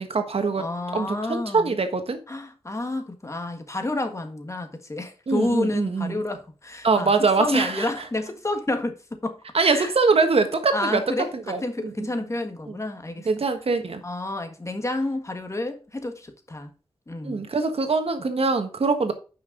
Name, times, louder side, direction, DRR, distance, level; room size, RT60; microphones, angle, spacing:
voice 1, 0.0-0.6 0.9-2.2 5.3-6.2 6.8-7.9 9.5-11.0 11.5-11.9 13.2-14.0 17.2-19.1, right 4 dB, 75° right, 1.4 m, -23 dB
voice 2, 0.6-1.7 2.3-7.1 7.4-8.9 9.2-9.9 10.7-11.3 11.6-13.3 14.0-16.7 17.1-17.4, left 2 dB, 30° left, 1.6 m, -29 dB
9.5 x 5.8 x 3.8 m
wide cardioid pair, 90°, 10 cm